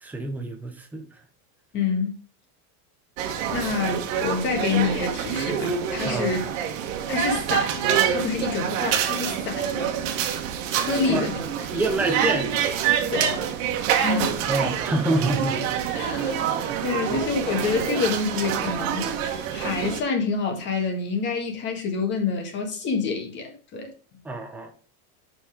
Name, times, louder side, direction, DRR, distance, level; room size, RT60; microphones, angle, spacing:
voice 1, 0.0-1.0 6.0-6.3 11.1-11.2 11.7-12.5 14.5-15.6 16.5-16.8 17.1-17.3 24.2-24.7, right 2 dB, 5° right, 0.5 m, -27 dB
voice 2, 1.7-2.1 3.5-6.4 7.1-9.9 10.7-11.4 11.7-11.9 13.1-13.5 14.0-14.3 14.6-14.7 15.9-16.5 16.8-19.0 19.5-23.9, left 5 dB, 25° left, 1.7 m, -27 dB
sound 1, 3.2-20.0, right 8 dB, 60° right, 1.4 m, -26 dB
6.9 x 5.7 x 4.9 m
supercardioid pair, 175°, 44 cm